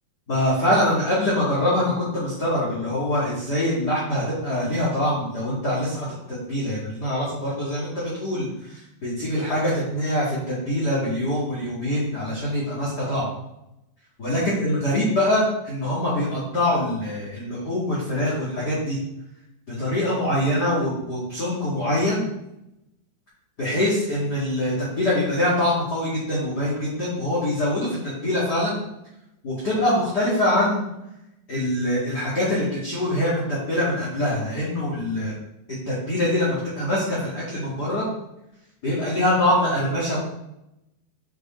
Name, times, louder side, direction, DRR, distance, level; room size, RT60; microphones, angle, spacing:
voice 1, 0.3-13.3 14.2-19.0 19.7-22.2 23.6-28.8 29.4-30.9 31.5-35.4 35.7-38.1 38.8-40.2, left 1 dB, 35° left, -7 dB, 1.7 m, -24 dB
8.3 x 4.9 x 4.3 m, 0.85 s
omnidirectional pair, 5.0 m